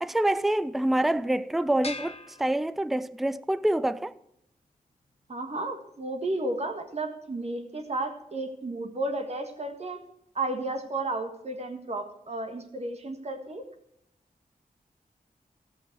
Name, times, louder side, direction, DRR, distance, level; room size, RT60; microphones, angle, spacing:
voice 1, 0.0-4.1, right 1 dB, ahead, 0.4 m, -26 dB
sound 1, 1.8-3.3, left 3 dB, 40° left, 1.1 m, -42 dB
voice 2, 5.3-10.0 10.3-13.6, right 2 dB, 45° right, 1.6 m, -33 dB
14.0 x 8.8 x 4.6 m
wide cardioid pair, 130°, 15 cm